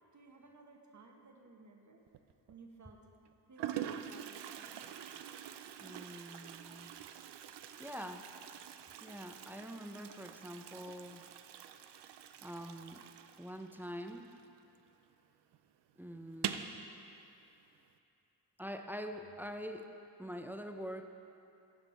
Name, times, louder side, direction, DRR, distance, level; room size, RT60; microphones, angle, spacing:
voice 1, 0.1-2.0 2.5-3.1 3.5-4.8, right 3 dB, 40° right, 2 dB, 1.3 m, -57 dB
Toilet flush, 2.1-2.5 3.3-3.4 3.6-14.9 15.1-15.2 15.5-15.6 16.3-16.8, right 10 dB, 75° right, 0.6 m, -45 dB
voice 2, 5.8-6.9 7.8-8.3 9.0-11.2 12.4-13.0 13.4-14.3 16.0-16.6 18.6-19.9 20.2-21.1, equal, 5° right, 5 dB, 0.6 m, -45 dB
15.5 x 5.3 x 4.3 m, 2.8 s
cardioid pair, 65°, 43 cm